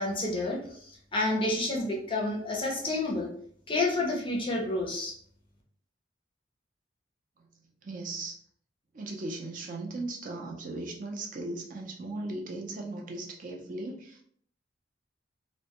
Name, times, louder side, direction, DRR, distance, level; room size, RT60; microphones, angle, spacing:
voice 1, 0.0-3.3 3.7-5.1, left 2 dB, 30° left, -1 dB, 0.5 m, -29 dB
voice 2, 7.8-8.3 8.9-14.2, right 2 dB, 45° right, 1 dB, 0.5 m, -37 dB
2.1 x 2.1 x 2.8 m, 0.62 s
head